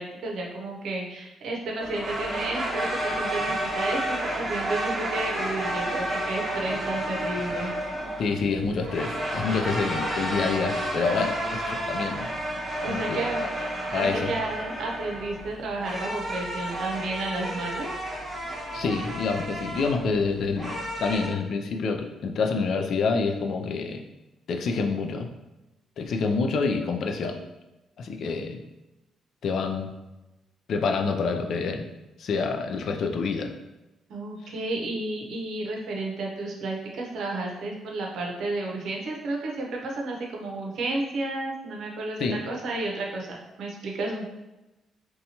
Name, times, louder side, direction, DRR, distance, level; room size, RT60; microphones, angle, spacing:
voice 1, 0.0-7.7 12.8-17.9 34.1-43.3 43.6-44.3, right 2 dB, 70° right, -1 dB, 0.6 m, -32 dB
sound 1, 1.8-21.3, right 1 dB, 15° right, 0.9 m, -31 dB
voice 2, 8.2-12.3 12.9-13.5 13.9-14.3 18.7-24.1 24.5-25.3 26.0-27.4 28.0-28.6 29.4-29.9 30.7-31.9 32.2-33.5 42.2-42.4, left 4 dB, 65° left, 4 dB, 0.3 m, -27 dB
2.7 x 2.3 x 2.7 m, 1.0 s
cardioid pair, 90°, 0 cm